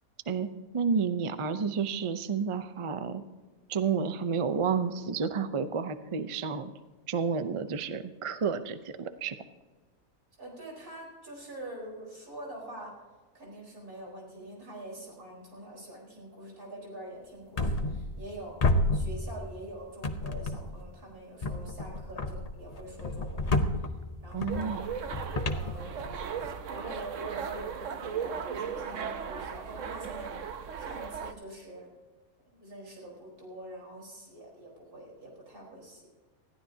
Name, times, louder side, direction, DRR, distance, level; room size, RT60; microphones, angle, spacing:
voice 1, 0.7-3.2 3.7-6.7 7.1-9.4 24.3-24.9, right 6 dB, 40° right, 11 dB, 0.4 m, -30 dB
voice 2, 10.4-12.9 13.3-18.6 18.9-23.5 23.8-23.9 24.2-24.8 25.5-26.1 26.7-31.9 32.5-36.1, right 1 dB, 80° right, -3 dB, 4.9 m, -45 dB
sound 1, 17.6-18.3 18.6-19.7 20.0-20.9 21.4-26.5, left 2 dB, 35° left, 0.7 m, -31 dB
sound 2, 24.5-31.3, right 7 dB, 60° right, 1.2 m, -37 dB
20.0 x 14.5 x 2.8 m, 1.4 s
omnidirectional pair, 1.5 m